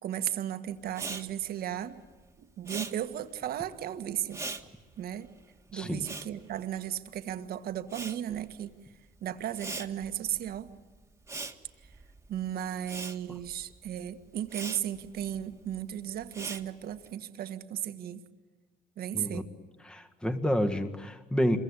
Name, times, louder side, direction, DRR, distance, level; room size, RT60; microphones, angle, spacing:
voice 1, 0.0-2.0 2.4-4.4 5.0-5.3 5.7-8.7 9.2-10.7 12.3-18.2 19.0-19.5, right 11 dB, 65° right, 9 dB, 1.8 m, -35 dB
Respiratory sounds, 0.9-7.4 7.6-17.1, right 3 dB, 15° right, 1.9 m, -43 dB
voice 2, 5.7-6.1 19.1-19.4 19.9-21.6, equal, 5° left, 5 dB, 1.7 m, -29 dB
26.5 x 23.0 x 9.8 m, 1.3 s
cardioid pair, 110°, 17 cm